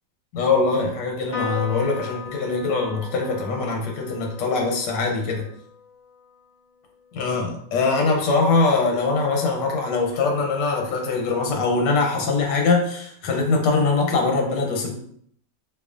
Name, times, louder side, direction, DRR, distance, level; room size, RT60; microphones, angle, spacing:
voice 1, 0.3-5.4 7.1-14.9, left 3 dB, 85° left, 1 dB, 1.3 m, -22 dB
Piano, 1.3-8.0, left 4 dB, 50° left, 0.5 m, -38 dB
4.5 x 2.4 x 2.5 m, 0.65 s
omnidirectional pair, 1.8 m